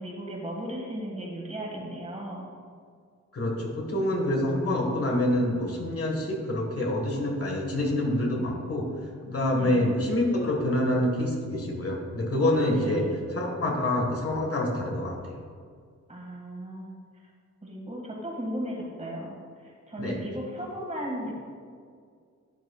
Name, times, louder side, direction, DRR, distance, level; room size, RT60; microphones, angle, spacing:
voice 1, 0.0-2.5 9.6-9.9 12.7-13.2 16.1-16.9 17.6-19.3 19.6-21.3, equal, 25° right, -2 dB, 1.9 m, -36 dB
voice 2, 3.3-8.9 9.3-13.0 13.3-15.1 20.0-20.2, left 1 dB, 50° left, 0 dB, 1.6 m, -26 dB
12.0 x 9.2 x 2.4 m, 2.1 s
wide cardioid pair, 160°, 29 cm